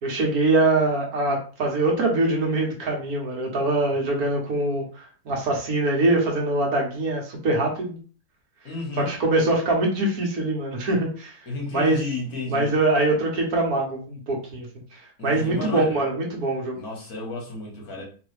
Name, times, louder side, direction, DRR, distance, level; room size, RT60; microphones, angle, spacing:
voice 1, 0.0-8.0 9.0-11.4 11.7-12.1 12.5-14.7 14.9-16.8, right 2 dB, 70° right, 1.6 m, -23 dB
voice 2, 8.6-9.1 11.5-12.7 15.2-16.0 16.8-18.0, left 2 dB, 70° left, 1.8 m, -32 dB
3.9 x 2.9 x 3.3 m
omnidirectional pair, 1.7 m